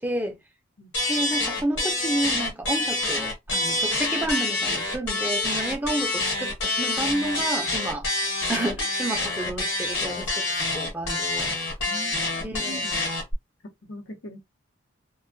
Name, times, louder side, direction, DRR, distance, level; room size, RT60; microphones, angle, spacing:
voice 1, 0.0-0.4 1.1-8.1 8.5-11.5 12.4-12.8, right 1 dB, 10° right, 0.4 m, -30 dB
sound 1, 0.9-13.3, left 2 dB, 65° left, 1.2 m, -27 dB
voice 2, 11.9-13.0 13.8-14.4, equal, 85° left, 0.8 m, -41 dB
2.2 x 2.1 x 2.6 m
head